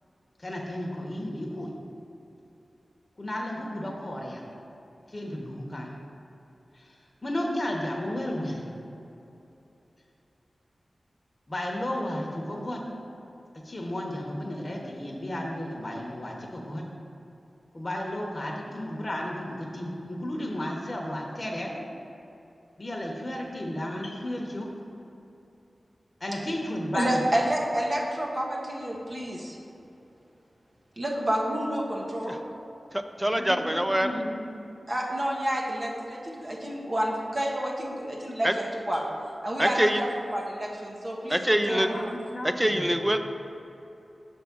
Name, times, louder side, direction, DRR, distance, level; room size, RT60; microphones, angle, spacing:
voice 1, 0.4-1.7 3.2-4.4 5.1-5.9 6.7-8.7 11.5-12.8 13.6-16.8 17.7-21.7 22.8-24.7 26.2-27.3 33.3-34.4 41.7-43.1, left 1 dB, 35° left, -1 dB, 0.9 m, -33 dB
voice 2, 26.9-29.6 31.0-32.4 34.9-39.1 39.4-42.2, right 1 dB, 45° right, -3 dB, 1.1 m, -29 dB
voice 3, 32.9-34.1 38.4-38.5 39.6-40.0 41.3-41.9 42.6-43.2, equal, 10° right, 7 dB, 0.4 m, -24 dB
6.0 x 3.6 x 5.9 m, 2.8 s
wide cardioid pair, 55°, 0 cm